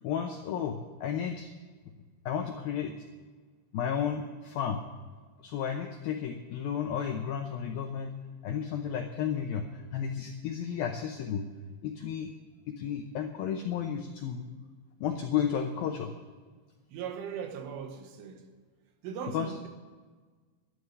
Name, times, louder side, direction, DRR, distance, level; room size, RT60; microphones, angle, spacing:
voice 1, 0.0-1.5 2.3-2.9 3.7-4.8 5.4-8.1 8.4-11.4 11.8-12.3 12.8-14.4 15.0-16.1 19.3-19.5, left 8 dB, 90° left, 2.1 m, -32 dB
voice 2, 16.9-18.5 19.0-19.7, right 7 dB, 90° right, 4.0 m, -39 dB
13.0 x 11.5 x 6.6 m
omnidirectional pair, 5.4 m